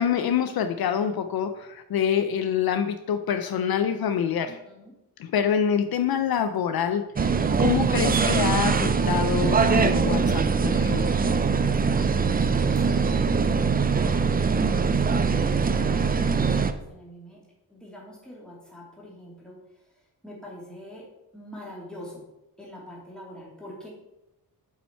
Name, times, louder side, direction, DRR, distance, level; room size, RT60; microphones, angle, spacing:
voice 1, 0.0-4.5 5.2-11.0, left 8 dB, 70° left, 9 dB, 0.6 m, -26 dB
voice 2, 4.5-4.9 12.2-14.3 14.8-17.4 17.7-19.6 20.2-21.1 21.3-22.2 22.6-23.9, equal, ahead, -4 dB, 2.5 m, -44 dB
sound 1, 7.2-16.7, right 5 dB, 25° right, 0.4 m, -22 dB
7.7 x 5.5 x 4.5 m, 0.93 s
wide cardioid pair, 115°, 38 cm